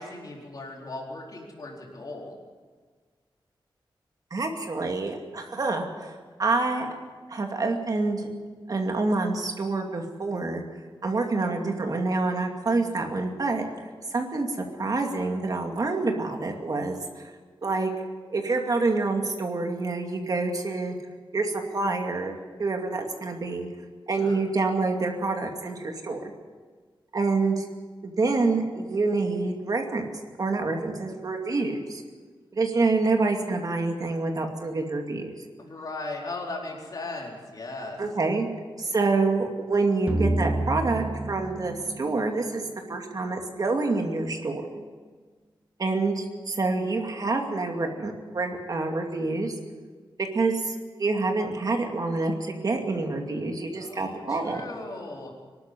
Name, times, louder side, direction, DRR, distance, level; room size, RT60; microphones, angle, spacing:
voice 1, 0.0-2.3 24.1-24.4 35.6-38.0 53.7-55.3, left 2 dB, 45° left, -1 dB, 4.4 m, -37 dB
voice 2, 4.3-6.9 7.3-8.3 8.7-10.6 11.0-13.7 14.1-17.0 17.6-17.9 18.3-21.0 21.3-23.7 24.1-26.3 27.1-27.7 28.0-30.1 30.4-32.0 32.5-35.3 38.0-38.5 38.8-44.8 45.8-49.5 50.3-54.6, right 3 dB, 45° right, 3 dB, 2.5 m, -27 dB
sound 1, 40.1-43.0, right 1 dB, 15° right, 1.6 m, -29 dB
24.5 x 12.5 x 9.8 m, 1.5 s
wide cardioid pair, 170°, 9 cm